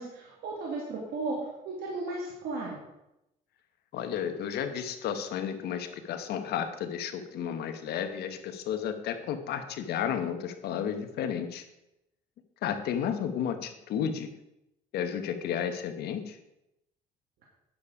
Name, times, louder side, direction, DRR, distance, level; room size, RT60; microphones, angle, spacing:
voice 1, 0.0-2.8, right 3 dB, 70° right, -2 dB, 2.2 m, -35 dB
voice 2, 3.9-11.6 12.6-14.3 14.9-16.4, left 8 dB, 70° left, 8 dB, 1.1 m, -32 dB
9.6 x 6.9 x 4.9 m, 0.87 s
cardioid pair, 110°, 17 cm